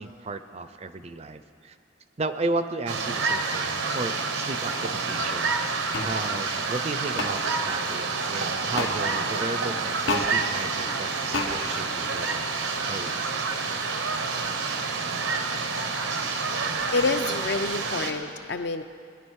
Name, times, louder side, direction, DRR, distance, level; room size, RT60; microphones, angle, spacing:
voice 1, 0.0-1.8 2.2-5.5 6.0-12.4 12.8-13.5, right 3 dB, 35° right, 11 dB, 0.5 m, -34 dB
sound 1, 2.9-18.1, right 4 dB, 90° right, 1.2 m, -28 dB
Explosion, 4.8-5.7 6.0-6.4 7.3-7.7 8.4-8.8 9.6-10.3 10.8-11.0, right 3 dB, 70° right, 0.8 m, -40 dB
sound 2, 5.9-6.1 7.2-7.3 8.8-8.9 10.1-10.3 11.3-11.5, left 2 dB, 85° left, 1.3 m, -27 dB
voice 2, 16.9-18.8, left 3 dB, 60° left, 8 dB, 0.6 m, -27 dB
21.5 x 10.5 x 4.7 m, 2.3 s
head